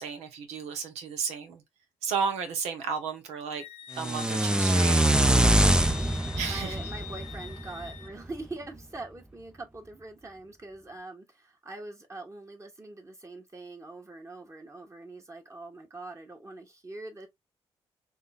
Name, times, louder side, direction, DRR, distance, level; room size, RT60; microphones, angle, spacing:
voice 1, 0.0-1.6 2.0-3.6 4.0-5.0 6.4-6.7, right 6 dB, 90° right, 0.9 m, -33 dB
Wind instrument woodwind instrument, 3.6-8.1, left 11 dB, 80° left, 0.5 m, -44 dB
sound 1, 4.0-8.1, right 1 dB, 10° right, 0.4 m, -24 dB
voice 2, 5.5-6.1 6.5-17.3, right 2 dB, 30° right, 1.4 m, -43 dB
3.6 x 2.7 x 2.4 m
supercardioid pair, 65°, 11 cm